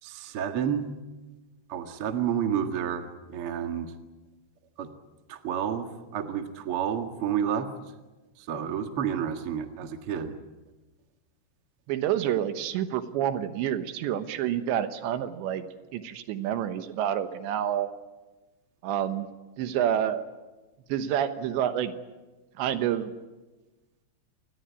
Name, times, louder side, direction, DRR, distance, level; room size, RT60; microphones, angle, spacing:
voice 1, 0.0-0.9 1.7-3.9 4.8-4.9 5.3-7.7 8.4-10.4, right 8 dB, 55° right, 6 dB, 1.5 m, -30 dB
voice 2, 11.9-15.6 15.9-17.9 18.8-19.3 19.6-20.3 20.9-21.9 22.6-23.1, right 10 dB, 75° right, 10 dB, 3.3 m, -28 dB
26.5 x 21.0 x 8.4 m, 1.2 s
omnidirectional pair, 5.3 m